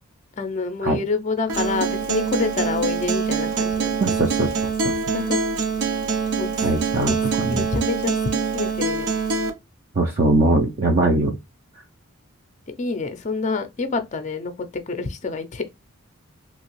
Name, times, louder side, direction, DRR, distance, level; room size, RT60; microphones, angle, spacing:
voice 1, 0.4-4.1 5.1-5.4 6.4-6.7 7.0-7.1 7.5-9.1 12.7-15.6, left 4 dB, 30° left, 0.4 m, -27 dB
Acoustic guitar, 1.5-9.5, right 5 dB, 85° right, 0.6 m, -24 dB
voice 2, 4.0-4.5 6.6-7.6 10.0-11.4, right 2 dB, 40° right, 0.4 m, -21 dB
2.9 x 2.8 x 2.9 m
head